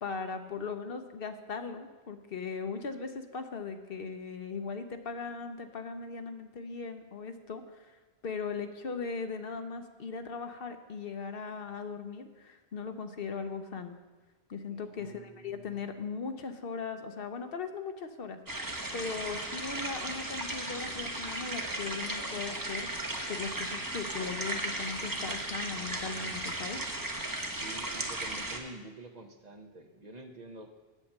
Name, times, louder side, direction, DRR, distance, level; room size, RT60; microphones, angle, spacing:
voice 1, 0.0-14.0 14.5-18.4 18.9-26.8, left 5 dB, 65° left, 8 dB, 1.0 m, -39 dB
voice 2, 14.7-15.8 27.5-30.7, right 2 dB, 45° right, 6 dB, 0.9 m, -48 dB
sound 1, 18.5-28.6, right 1 dB, 20° right, 1.0 m, -36 dB
8.4 x 8.0 x 7.2 m, 1.2 s
omnidirectional pair, 1.1 m